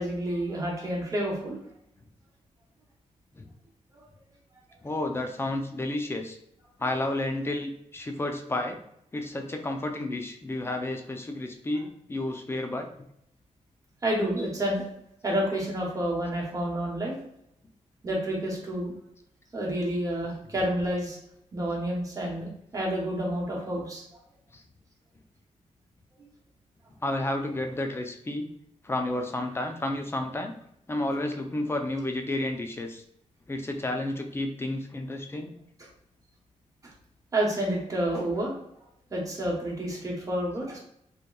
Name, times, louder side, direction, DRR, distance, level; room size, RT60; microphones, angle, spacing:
voice 1, 0.0-1.6 14.0-14.8 15.2-17.2 18.0-18.9 19.5-21.2 21.5-24.0 37.3-38.5 39.1-40.8, right 1 dB, 25° right, -2 dB, 0.8 m, -29 dB
voice 2, 4.8-6.4 6.8-8.8 9.1-13.1 24.5-24.6 27.0-28.5 28.8-30.5 30.9-33.0 33.5-35.6, left 1 dB, 20° left, 4 dB, 0.3 m, -31 dB
2.9 x 2.2 x 2.2 m, 0.73 s
wide cardioid pair, 110°, 13 cm